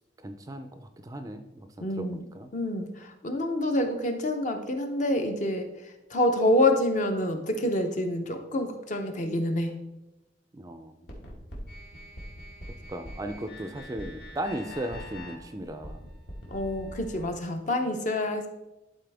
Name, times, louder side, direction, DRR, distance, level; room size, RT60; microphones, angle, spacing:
voice 1, 0.2-2.5 10.5-11.1 12.9-16.1, right 1 dB, 20° right, 8 dB, 0.4 m, -37 dB
voice 2, 1.8-2.2 2.5-5.7 6.1-9.7 16.5-18.5, left 1 dB, 40° left, 6 dB, 0.7 m, -27 dB
sound 1, 11.1-17.2, left 1 dB, 60° left, 1.7 m, -43 dB
11.0 x 4.2 x 3.4 m, 1.0 s
head